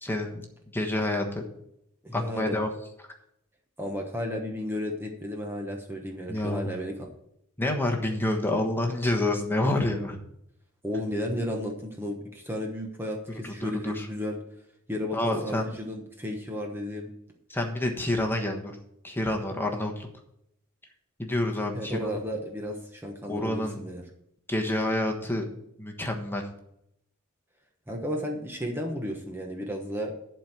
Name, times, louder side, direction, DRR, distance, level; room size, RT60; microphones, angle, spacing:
voice 1, 0.0-0.4 0.7-1.4 2.1-2.7 6.3-6.7 7.6-10.2 13.4-14.1 15.1-15.7 17.5-18.7 19.0-20.1 21.2-22.1 23.3-23.8 24.5-25.4 25.8-26.4, left 1 dB, 10° left, 2 dB, 1.3 m, -28 dB
voice 2, 2.0-2.6 3.8-7.1 10.8-14.4 14.9-17.1 21.7-24.0 27.9-30.1, left 1 dB, 10° right, 1 dB, 1.0 m, -33 dB
11.5 x 4.5 x 7.8 m, 0.77 s
head